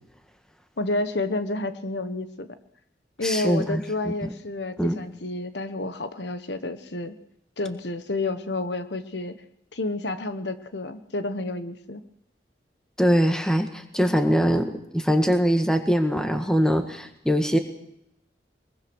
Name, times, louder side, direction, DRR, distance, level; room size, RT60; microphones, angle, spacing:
voice 1, 0.8-2.5 3.2-7.1 7.6-9.4 9.7-12.0, left 2 dB, 75° left, 10 dB, 1.3 m, -30 dB
voice 2, 3.2-4.3 4.8-5.0 13.0-17.6, equal, 5° left, 6 dB, 1.6 m, -23 dB
23.0 x 21.5 x 6.3 m, 0.78 s
head